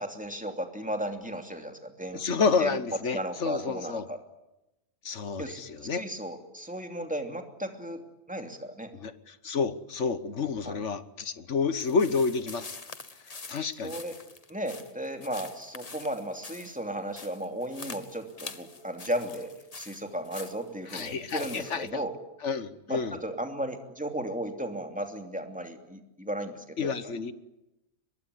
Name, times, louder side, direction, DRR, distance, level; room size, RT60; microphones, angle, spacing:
voice 1, 0.0-2.2 2.6-2.8 3.1-4.2 5.4-5.6 5.9-8.0 8.3-9.0 10.6-10.8 13.8-14.2 14.5-22.2 22.9-27.1, right 1 dB, 5° right, 4 dB, 2.8 m, -35 dB
voice 2, 2.1-4.1 5.0-6.0 9.0-12.8 13.5-14.0 20.9-22.0 22.4-23.2 26.8-27.3, left 5 dB, 65° left, 13 dB, 1.5 m, -29 dB
sound 1, 11.8-21.9, left 4 dB, 30° left, 1.3 m, -46 dB
24.0 x 21.5 x 9.9 m, 0.94 s
omnidirectional pair, 1.4 m